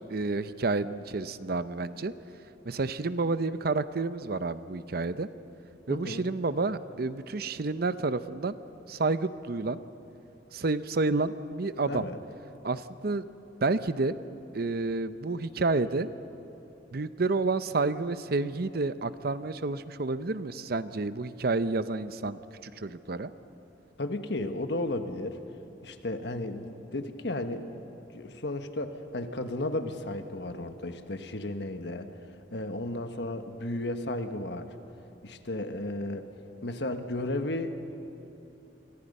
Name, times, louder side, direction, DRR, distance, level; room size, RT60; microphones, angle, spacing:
voice 1, 0.1-2.1 2.7-5.3 5.9-8.6 8.9-9.8 10.5-12.1 12.6-13.3 13.6-14.2 14.5-16.1 16.9-23.3, right 3 dB, 55° right, 13 dB, 0.7 m, -30 dB
voice 2, 5.9-6.2 11.8-12.2 24.0-25.4 25.8-27.8 28.1-32.1 32.5-34.7 35.2-36.3 36.6-37.8, left 1 dB, 65° left, 7 dB, 1.4 m, -34 dB
29.5 x 24.0 x 5.5 m, 2.9 s
head